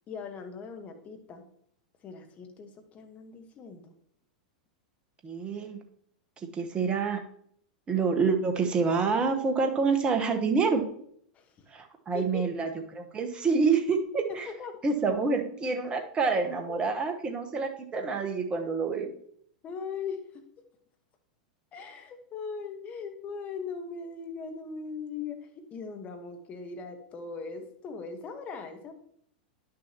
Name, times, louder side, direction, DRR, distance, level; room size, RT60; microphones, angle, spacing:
voice 1, 0.1-1.4 2.0-3.9 11.3-11.7 12.1-12.5 14.3-14.8 16.7-16.9 19.6-20.4 21.7-28.9, left 5 dB, 35° left, 6 dB, 1.4 m, -40 dB
voice 2, 5.2-5.8 6.4-7.2 7.9-10.8 11.7-14.5 14.8-19.1, right 4 dB, 25° right, 5 dB, 1.2 m, -27 dB
10.5 x 6.2 x 3.0 m, 0.68 s
hypercardioid pair, 95°, 4 cm